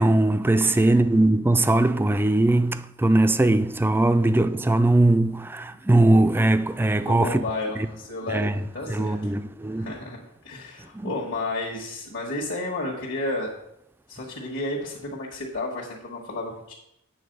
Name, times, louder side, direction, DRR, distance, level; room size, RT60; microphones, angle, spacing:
voice 1, 0.0-7.4 7.8-7.9 8.3-8.6 8.9-10.0 10.9-11.1, right 2 dB, 10° right, 0.3 m, -20 dB
voice 2, 0.6-0.9 7.0-9.2 9.7-10.2 10.4-13.5 14.1-16.7, left 2 dB, 65° left, 1.5 m, -32 dB
8.6 x 3.9 x 6.7 m
head